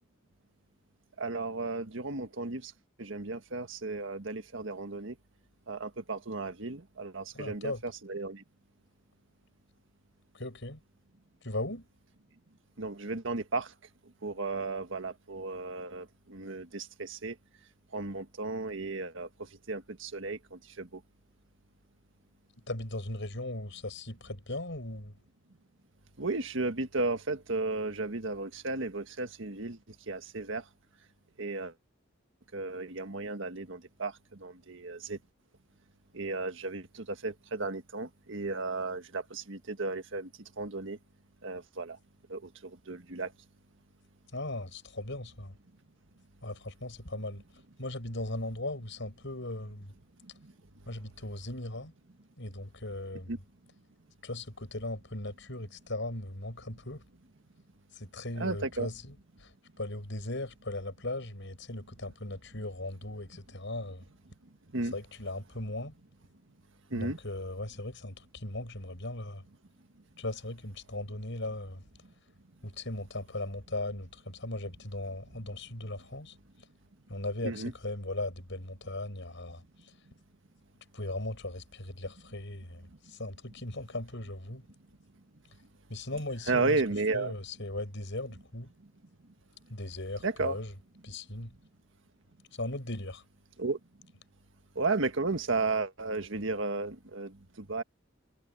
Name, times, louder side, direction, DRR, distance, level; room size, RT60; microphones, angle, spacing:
voice 1, 1.2-2.7 3.0-5.1 5.7-8.4 12.8-13.7 14.2-17.3 17.9-19.3 19.7-21.0 26.2-29.8 30.1-30.6 31.4-31.7 32.5-34.1 34.4-35.2 36.1-40.3 40.6-41.0 41.4-42.0 42.3-43.3 50.4-50.5 53.3-53.4 58.4-58.9 64.7-64.9 66.9-67.2 77.4-77.7 86.5-87.3 90.2-90.6 93.6-93.8 94.7-97.8, right 3 dB, 65° right, 1.6 m, -34 dB
voice 2, 7.3-7.8 10.3-10.8 11.4-11.9 22.7-25.1 44.3-45.6 46.4-47.4 47.8-49.9 50.9-51.9 52.4-53.4 54.2-57.0 57.9-59.1 59.4-59.5 59.8-64.0 64.9-65.9 66.9-69.4 70.2-71.8 72.6-76.3 77.1-79.9 80.9-84.7 85.9-86.8 87.1-88.7 89.7-90.7 91.0-91.5 92.5-93.2, left 2 dB, 65° left, 8.0 m, -38 dB
head